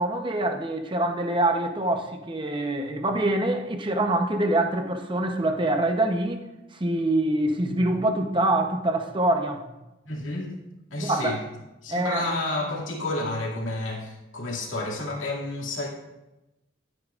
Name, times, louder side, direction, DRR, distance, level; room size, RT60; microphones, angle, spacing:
voice 1, 0.0-6.4 6.7-9.6 11.0-11.4 11.9-12.2, right 1 dB, 25° right, 4 dB, 0.8 m, -25 dB
voice 2, 10.0-10.6 10.9-11.4 11.8-15.9, left 2 dB, 80° left, -2 dB, 2.3 m, -30 dB
13.0 x 8.9 x 2.5 m, 0.99 s
head